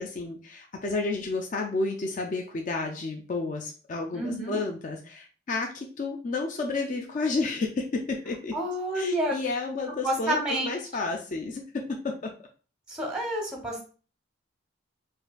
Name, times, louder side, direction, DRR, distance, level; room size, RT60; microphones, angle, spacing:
voice 1, 0.0-8.5 9.0-11.6 12.0-12.3, left 3 dB, 40° left, 3 dB, 0.3 m, -31 dB
voice 2, 4.1-4.6 8.5-9.4 10.0-10.7 12.9-13.8, right 1 dB, 5° right, 1 dB, 0.7 m, -29 dB
4.4 x 2.5 x 2.2 m, 0.38 s
head